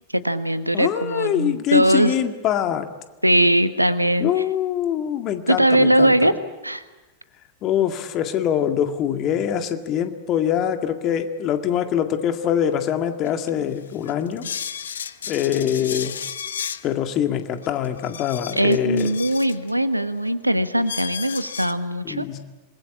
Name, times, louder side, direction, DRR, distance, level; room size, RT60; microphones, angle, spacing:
voice 1, 0.1-2.1 3.2-4.3 5.5-6.3 6.6-6.8 18.6-22.2, right 1 dB, 85° right, 12 dB, 1.2 m, -20 dB
voice 2, 0.7-2.9 4.2-6.3 7.6-14.5 15.3-16.2 16.8-19.2 22.0-22.4, left 10 dB, 35° left, 7 dB, 2.0 m, -24 dB
sound 1, 13.2-13.3 13.9-16.9 17.6-19.7 20.3-20.4 20.9-21.7, left 7 dB, 65° left, 1.0 m, -33 dB
27.0 x 21.0 x 8.7 m, 1.2 s
figure-of-eight pair, 90°, 0 cm